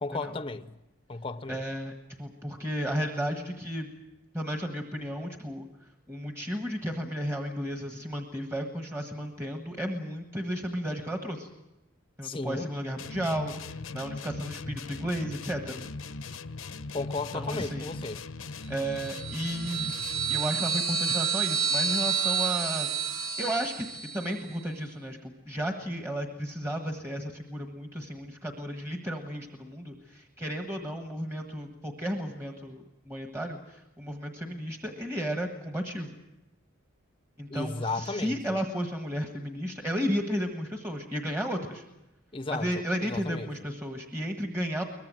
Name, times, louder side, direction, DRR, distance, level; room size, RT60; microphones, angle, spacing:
voice 1, 0.0-0.7 1.1-1.6 12.2-12.7 16.9-18.3 37.5-38.6 42.3-43.7, left 3 dB, 25° left, 0.7 m, -34 dB
voice 2, 1.5-1.9 2.2-3.9 4.3-5.7 6.1-11.5 12.2-15.9 16.2-16.3 17.3-17.9 18.7-19.9 20.3-22.9 23.1-23.9 24.1-36.2 37.4-41.8 42.5-44.8, equal, 15° right, 1.4 m, -33 dB
sound 1, 13.0-20.5, left 3 dB, 80° left, 0.9 m, -40 dB
sound 2, 19.0-24.4, right 6 dB, 80° right, 1.7 m, -29 dB
23.0 x 20.0 x 7.6 m
head